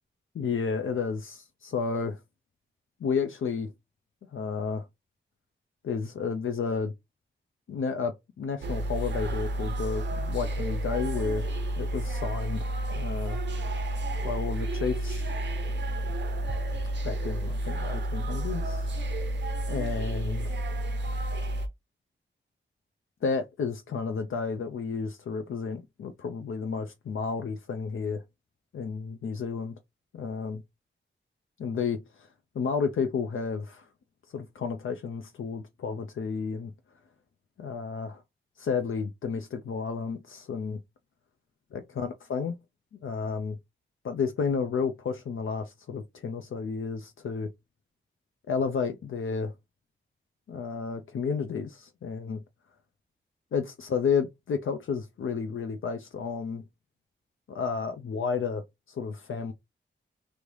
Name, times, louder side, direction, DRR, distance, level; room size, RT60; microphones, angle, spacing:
voice 1, 0.3-2.2 3.0-3.7 4.3-4.9 5.8-6.9 7.7-11.4 11.8-13.4 14.2-15.3 17.0-18.9 19.7-20.5 23.2-28.2 28.7-29.8 30.1-30.6 31.6-32.3 32.5-33.9 34.3-36.7 37.6-38.2 38.6-40.8 41.7-42.6 42.9-43.6 44.0-47.5 48.5-49.5 50.5-52.4 53.5-56.6 57.5-59.5, left 5 dB, 80° left, 0.5 m, -31 dB
sound 1, 8.6-21.7, right 1 dB, 60° right, 0.6 m, -31 dB
3.1 x 2.6 x 3.2 m
wide cardioid pair, 85°, 20 cm